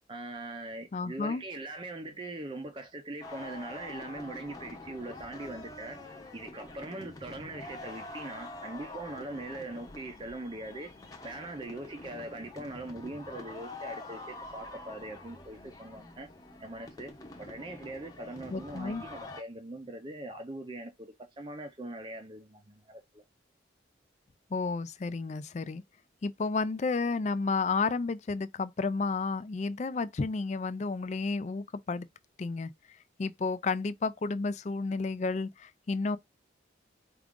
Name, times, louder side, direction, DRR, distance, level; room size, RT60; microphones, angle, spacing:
voice 1, 0.1-6.0 6.3-10.9 11.2-16.3 16.6-17.1 17.4-23.2, right 2 dB, 25° right, 0.5 m, -41 dB
voice 2, 0.9-1.4 18.5-19.0 24.5-25.8 26.2-32.1 32.4-32.7 33.2-36.2, left 4 dB, 35° left, 0.3 m, -31 dB
sound 1, 3.2-19.4, left 2 dB, 20° left, 0.8 m, -46 dB
4.7 x 2.4 x 3.6 m
head